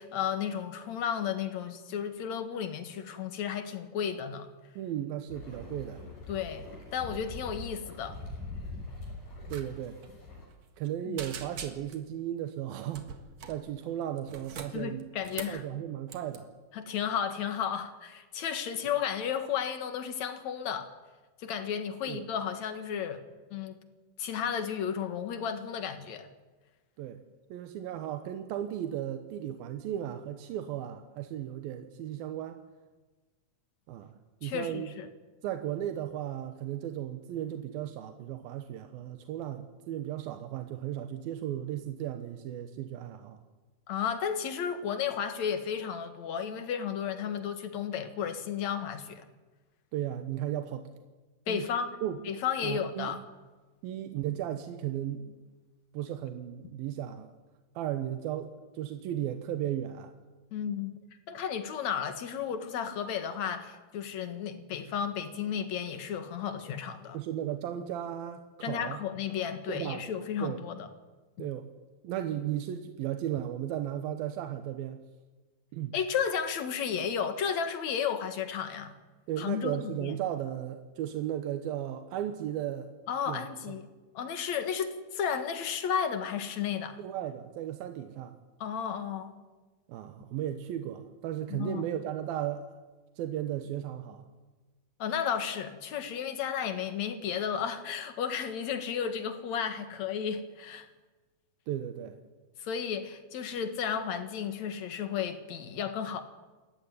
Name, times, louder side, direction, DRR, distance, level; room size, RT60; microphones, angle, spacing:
voice 1, 0.0-4.5 6.3-8.2 11.1-11.2 14.7-15.6 16.7-20.9 21.4-23.2 23.5-23.8 24.2-26.3 34.4-35.1 43.9-49.3 51.5-52.0 52.2-53.2 60.5-61.0 61.3-67.2 68.6-70.9 71.4-71.5 75.9-78.9 79.4-80.2 83.1-83.9 84.1-87.0 88.6-89.3 91.5-91.8 95.0-100.9 102.6-106.2, left 8 dB, 55° left, 2.8 m, -33 dB
voice 2, 4.8-6.0 9.5-10.0 10.8-13.1 13.5-15.1 15.5-16.5 22.1-22.3 27.0-27.2 27.5-32.6 33.9-34.2 34.4-34.9 35.4-43.4 49.9-50.9 51.5-51.7 52.0-52.2 52.6-53.1 53.8-55.4 55.9-57.3 57.8-60.1 67.1-69.0 69.7-70.0 70.4-70.6 71.4-71.7 72.0-75.0 75.7-75.9 79.3-82.9 83.3-83.8 87.0-88.4 89.9-92.7 93.2-94.3 101.7-102.2, right 11 dB, 90° right, 3.0 m, -35 dB
sound 1, 5.3-10.5, left 2 dB, 80° left, 8.0 m, -43 dB
sound 2, 9.5-9.7 9.9-10.1 10.5-10.9 11.2-12.1 12.9-13.6 14.2-15.6 16.1-16.4, right 7 dB, 55° right, 2.7 m, -43 dB
27.5 x 14.5 x 9.6 m
omnidirectional pair, 4.1 m